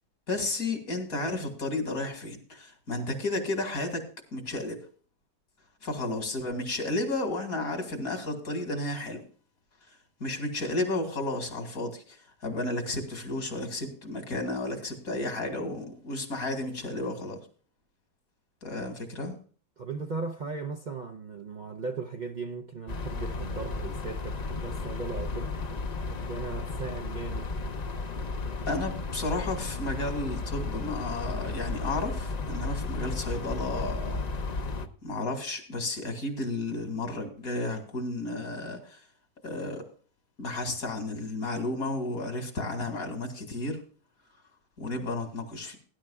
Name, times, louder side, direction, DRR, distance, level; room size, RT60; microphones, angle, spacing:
voice 1, 0.3-4.8 5.8-9.2 10.2-12.2 12.4-17.4 18.6-19.3 28.7-34.2 35.0-39.0 39.4-39.8 40.4-43.8 44.8-45.8, left 2 dB, 70° left, 2.5 m, -32 dB
voice 2, 19.8-25.5 26.0-27.5, right 4 dB, 45° right, 0.6 m, -37 dB
sound 1, 22.9-34.9, left 3 dB, 40° left, 0.7 m, -34 dB
19.0 x 10.5 x 2.4 m
omnidirectional pair, 1.5 m